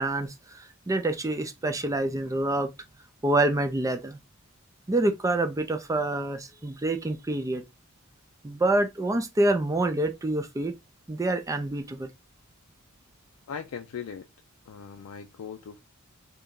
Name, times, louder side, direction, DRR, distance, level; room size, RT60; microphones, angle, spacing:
voice 1, 0.0-2.7 3.2-4.2 4.9-7.6 8.4-10.7 11.1-12.1, right 2 dB, 15° right, 0.4 m, -27 dB
voice 2, 13.5-14.3 14.7-15.8, left 7 dB, 75° left, 0.4 m, -39 dB
2.8 x 2.6 x 3.5 m
head